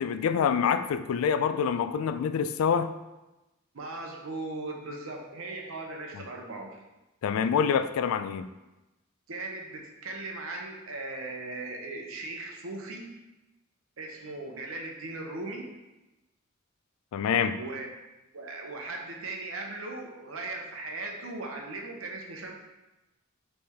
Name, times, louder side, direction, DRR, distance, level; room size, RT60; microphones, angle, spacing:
voice 1, 0.0-2.9 7.2-8.5 17.1-17.6, left 7 dB, 90° left, 10 dB, 0.3 m, -26 dB
voice 2, 3.7-6.8 9.3-13.1 14.0-15.7 17.2-17.9 18.3-22.6, right 2 dB, 80° right, 1 dB, 0.8 m, -38 dB
4.3 x 3.3 x 3.5 m, 1.0 s
head